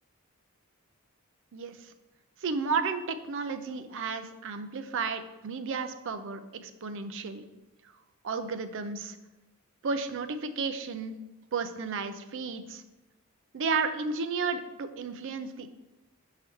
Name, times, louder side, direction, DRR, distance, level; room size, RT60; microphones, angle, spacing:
voice 1, 1.5-1.9 2.4-7.4 8.2-9.2 9.8-11.2 11.5-12.8 13.5-15.7, right 4 dB, 60° right, 10 dB, 0.5 m, -33 dB
6.8 x 4.8 x 3.1 m, 1.0 s
head